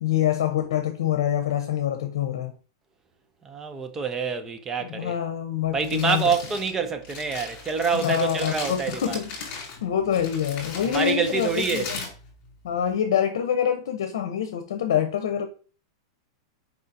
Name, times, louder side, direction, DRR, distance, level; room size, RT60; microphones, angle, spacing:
voice 1, 0.0-2.5 4.8-6.3 7.9-12.0 12.6-15.5, left 10 dB, 80° left, 0.7 m, -26 dB
voice 2, 3.4-5.2 5.7-9.2 10.8-11.9, right 5 dB, 15° right, 0.6 m, -26 dB
Crumpling crinkling, 5.6-12.9, left 4 dB, 40° left, 2.2 m, -38 dB
4.7 x 3.8 x 2.7 m
supercardioid pair, 145°, 2 cm